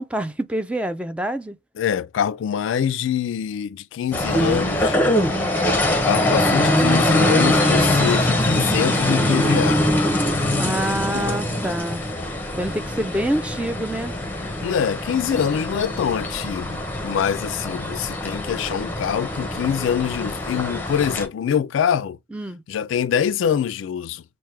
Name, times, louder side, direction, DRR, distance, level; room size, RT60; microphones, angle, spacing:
voice 1, 0.0-1.6 5.3-5.6 10.6-12.1 12.5-14.1 22.3-22.6, right 1 dB, 5° right, 0.3 m, -26 dB
voice 2, 1.8-5.0 5.9-9.8 11.1-11.4 14.4-22.2 22.7-24.2, left 8 dB, 80° left, 0.3 m, -24 dB
sound 1, 4.1-21.3, left 1 dB, 10° left, 0.7 m, -22 dB
4.5 x 2.1 x 3.2 m
head